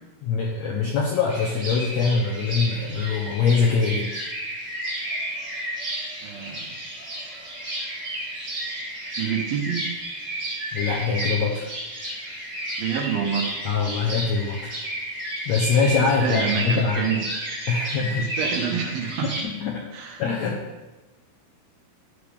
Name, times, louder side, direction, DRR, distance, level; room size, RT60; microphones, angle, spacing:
voice 1, 0.2-4.2 10.7-11.7 13.6-14.8 15.4-17.1 17.7-18.3 19.2-19.8 20.2-20.6, left 5 dB, 75° left, -2 dB, 1.6 m, -23 dB
sound 1, 1.3-19.4, right 1 dB, 20° right, 3.0 m, -32 dB
voice 2, 6.2-6.8 9.2-9.8 12.8-13.5 16.2-17.2 18.2-19.3 19.9-20.2, right 8 dB, 75° right, 2 dB, 2.9 m, -27 dB
11.5 x 7.6 x 3.5 m, 1.2 s
omnidirectional pair, 4.4 m